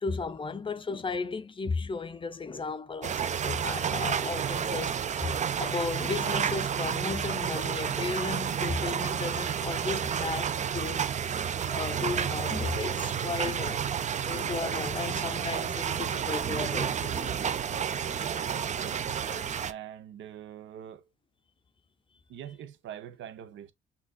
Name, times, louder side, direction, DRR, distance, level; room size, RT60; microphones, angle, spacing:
voice 1, 0.0-5.3 5.6-11.1 11.7-13.9 14.2-17.4, left 4 dB, 25° left, 0.5 m, -35 dB
sound 1, 3.0-19.7, right 8 dB, 35° right, 0.4 m, -30 dB
voice 2, 18.7-19.1 19.6-21.0 22.3-23.7, right 10 dB, 70° right, 0.7 m, -43 dB
6.1 x 2.8 x 2.2 m
cardioid pair, 90°, 20 cm